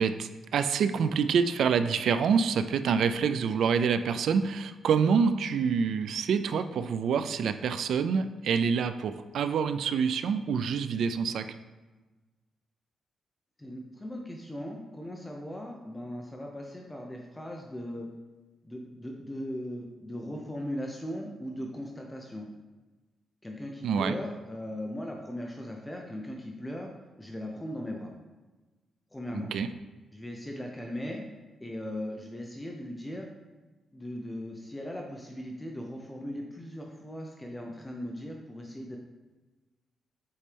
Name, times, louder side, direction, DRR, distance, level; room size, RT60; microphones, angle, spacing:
voice 1, 0.0-11.5 23.8-24.2 29.3-29.7, right 6 dB, 75° right, 10 dB, 0.3 m, -27 dB
voice 2, 13.6-18.1 18.6-22.5 23.4-26.9 27.2-28.1 29.1-29.5 30.1-31.2 31.6-33.3 33.9-39.0, left 1 dB, 10° left, 1 dB, 0.7 m, -38 dB
8.4 x 4.3 x 3.4 m, 1.2 s
cardioid pair, 120°, 0 cm